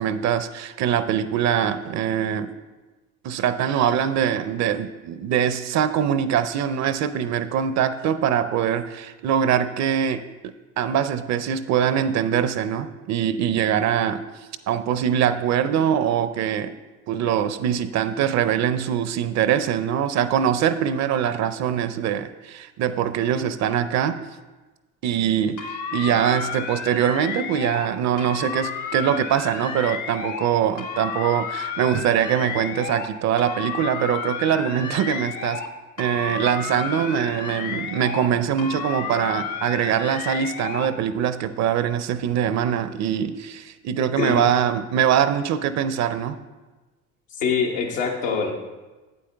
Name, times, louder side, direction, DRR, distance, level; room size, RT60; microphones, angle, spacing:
voice 1, 0.0-2.5 3.2-14.3 14.7-16.7 17.1-24.2 25.0-35.6 36.0-46.4, right 9 dB, 45° right, 13 dB, 0.5 m, -23 dB
sound 1, 25.6-27.9 28.2-30.5 30.8-33.1 33.4-35.7 36.0-38.3 38.6-40.9, left 6 dB, 50° left, 1.0 m, -32 dB
voice 2, 47.4-48.5, left 5 dB, 85° left, 0 dB, 1.3 m, -24 dB
8.4 x 7.8 x 3.4 m, 1.2 s
hypercardioid pair, 65°, 38 cm